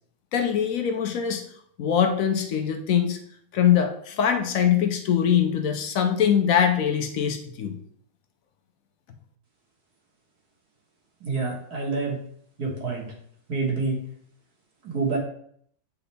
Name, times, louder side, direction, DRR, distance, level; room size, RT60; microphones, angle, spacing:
voice 1, 0.3-1.4 1.8-3.2 3.5-7.7, left 8 dB, 70° left, 6 dB, 0.8 m, -22 dB
voice 2, 11.2-12.2 12.6-13.1 13.5-14.0 14.8-15.2, right 4 dB, 60° right, -2 dB, 2.1 m, -27 dB
8.5 x 4.1 x 3.4 m, 0.64 s
omnidirectional pair, 2.0 m